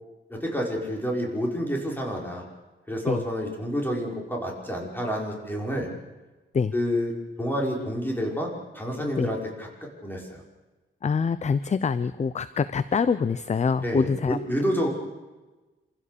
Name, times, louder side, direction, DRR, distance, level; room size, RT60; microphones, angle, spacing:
voice 1, 0.3-2.4 2.9-5.9 6.7-7.1 7.4-8.5 8.7-9.7 10.0-10.4 13.8-14.9, equal, 10° left, -1 dB, 5.5 m, -28 dB
voice 2, 11.0-14.4, left 5 dB, 35° left, 15 dB, 0.6 m, -25 dB
27.0 x 16.0 x 6.9 m, 1.2 s
wide cardioid pair, 125°, 21 cm